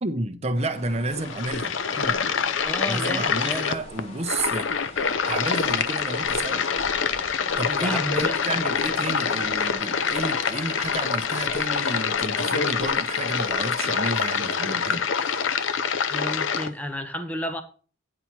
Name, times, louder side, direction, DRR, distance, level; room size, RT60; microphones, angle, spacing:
voice 1, 0.0-2.3 2.9-6.7 7.6-15.7, right 2 dB, 35° right, 0.8 m, -31 dB
sound 1, 0.5-13.7, left 1 dB, 30° left, 1.3 m, -43 dB
sound 2, 1.1-16.7, left 6 dB, 80° left, 0.6 m, -26 dB
voice 2, 2.6-3.8 7.6-8.4 16.1-17.6, equal, 10° left, 0.9 m, -31 dB
9.7 x 4.3 x 6.0 m
head